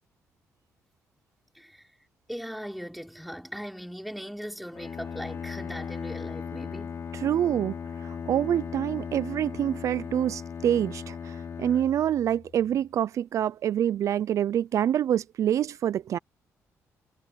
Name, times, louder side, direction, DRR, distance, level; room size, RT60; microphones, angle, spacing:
voice 1, 2.3-7.0, equal, ahead, 5.4 m, -39 dB
Bowed string instrument, 4.7-12.7, left 6 dB, 50° left, 5.5 m, -37 dB
voice 2, 7.1-16.2, right 10 dB, 65° right, 0.4 m, -26 dB
cardioid pair, 95°, 6 cm